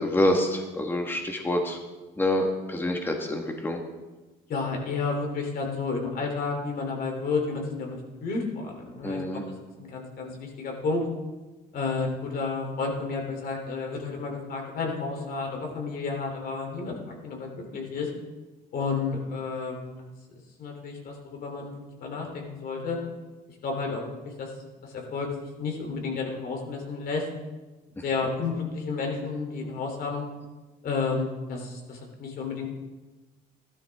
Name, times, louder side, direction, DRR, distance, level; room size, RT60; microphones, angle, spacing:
voice 1, 0.0-1.8 2.2-3.8 9.0-9.4, left 1 dB, 10° left, 3 dB, 1.5 m, -26 dB
voice 2, 4.5-9.2 9.8-11.0 11.7-17.0 17.2-18.1 18.7-19.9 20.6-23.0 23.6-24.0 24.4-24.5 24.8-25.3 25.6-27.2 28.0-30.2 30.8-32.7, left 4 dB, 60° left, 1 dB, 3.1 m, -31 dB
14.0 x 12.5 x 3.5 m, 1.2 s
cardioid pair, 110°, 17 cm